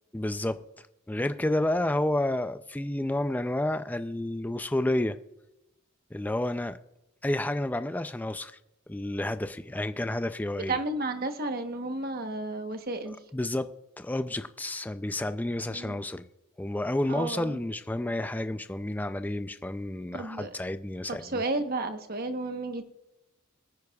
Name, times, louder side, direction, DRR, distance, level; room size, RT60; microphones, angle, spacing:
voice 1, 0.1-0.6 1.1-5.2 6.1-6.8 7.2-8.5 8.9-10.8 13.3-13.7 14.0-16.3 16.6-21.2, left 1 dB, 10° left, 10 dB, 0.3 m, -30 dB
voice 2, 10.7-13.2 15.7-16.0 17.1-17.6 20.1-20.6 21.1-22.8, right 2 dB, 45° right, 7 dB, 1.0 m, -32 dB
22.5 x 9.5 x 2.3 m, 0.92 s
head